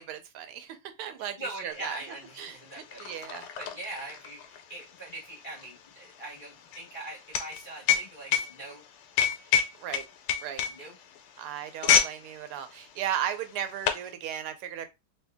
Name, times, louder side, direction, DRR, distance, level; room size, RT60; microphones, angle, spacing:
voice 1, 0.0-2.0 2.4-2.6 3.0-3.4 9.4-10.0 10.4-10.6 11.4-14.9, right 10 dB, 85° right, 1.6 m, -36 dB
voice 2, 1.2-3.0 3.3-8.8 10.7-11.0, right 2 dB, 35° left, 0.8 m, -42 dB
sound 1, 1.9-2.0 2.2-12.2 12.5-12.8 13.4-14.1, left 8 dB, 90° left, 1.6 m, -28 dB
3.6 x 2.7 x 3.4 m
omnidirectional pair, 2.3 m